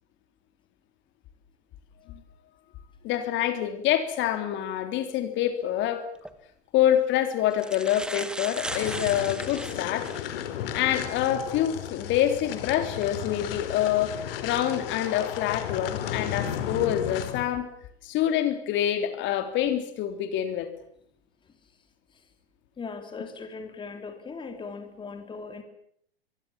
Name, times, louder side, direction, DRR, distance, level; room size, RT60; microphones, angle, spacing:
voice 1, 3.0-6.1 6.7-10.1 10.7-14.1 14.4-17.7 18.0-20.7, left 11 dB, 35° left, 8 dB, 3.5 m, -26 dB
sound 1, 6.1-6.3 7.2-7.3 7.5-10.3 10.9-11.0 12.8-13.0 13.6-13.9, right 1 dB, 5° right, 1.9 m, -37 dB
sound 2, 8.5-17.5, left 10 dB, 60° left, 4.2 m, -34 dB
voice 2, 22.8-25.6, left 4 dB, 15° left, 7 dB, 3.4 m, -39 dB
24.5 x 23.0 x 7.3 m, 0.68 s
hypercardioid pair, 115°, 32 cm